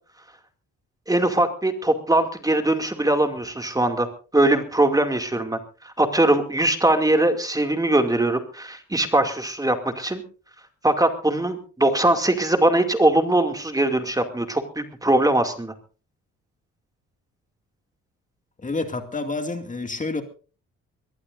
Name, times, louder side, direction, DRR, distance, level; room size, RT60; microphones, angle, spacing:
voice 1, 1.1-4.1 4.3-10.2 10.8-15.7, right 1 dB, 10° right, 2.4 m, -21 dB
voice 2, 18.6-20.2, left 3 dB, 25° left, 2.3 m, -28 dB
22.0 x 19.5 x 2.6 m
cardioid pair, 90°, 30 cm